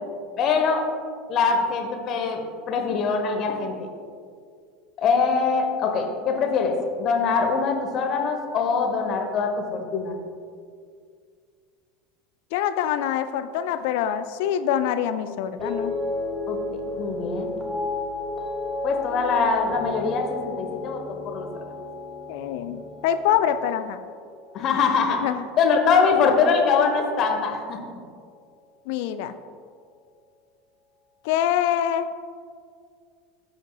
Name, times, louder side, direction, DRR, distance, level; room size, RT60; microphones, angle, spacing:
voice 1, 0.4-0.9 1.3-2.4 2.7-3.9 5.0-10.2 16.5-16.6 17.0-17.5 18.8-21.5 24.5-25.2 25.6-27.8, left 5 dB, 40° left, 3 dB, 1.1 m, -23 dB
voice 2, 12.5-16.0 22.3-24.0 25.2-25.5 28.9-29.3 31.2-32.1, left 10 dB, 60° left, 10 dB, 0.3 m, -25 dB
sound 1, 15.6-26.0 26.3-26.8, left 2 dB, 5° right, 1.2 m, -33 dB
14.0 x 5.2 x 2.4 m, 2.2 s
figure-of-eight pair, 75°, 0 cm